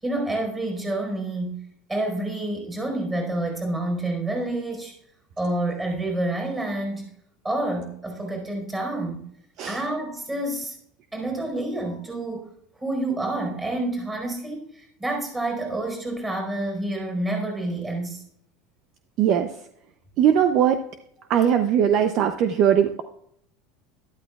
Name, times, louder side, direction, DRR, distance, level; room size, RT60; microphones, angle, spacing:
voice 1, 0.0-1.6 1.9-4.9 5.4-7.1 7.4-9.3 9.7-10.8 11.1-12.5 12.7-18.2, right 1 dB, 15° right, 2 dB, 4.6 m, -28 dB
voice 2, 19.2-19.5 20.2-20.8 21.3-23.0, right 9 dB, 45° right, 8 dB, 0.6 m, -20 dB
12.5 x 12.5 x 2.4 m, 0.70 s
supercardioid pair, 145°, 0 cm